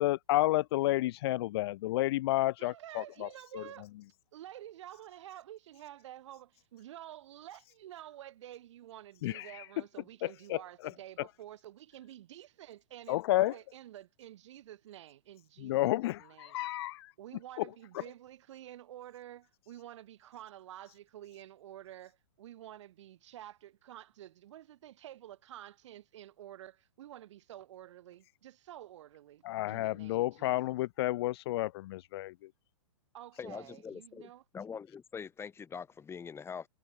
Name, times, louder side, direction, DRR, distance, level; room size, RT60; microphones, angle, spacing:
voice 1, 0.0-3.3 3.5-3.6 9.2-9.4 10.5-10.6 13.1-13.5 15.6-17.1 29.4-32.3, left 16 dB, 50° left, 0.4 m, -30 dB
voice 2, 2.6-3.9 4.3-16.7 17.2-30.8 33.1-34.4, right 12 dB, 60° right, 1.7 m, -50 dB
voice 3, 33.4-36.7, left 6 dB, 15° left, 3.0 m, -43 dB
hypercardioid pair, 130°, 17 cm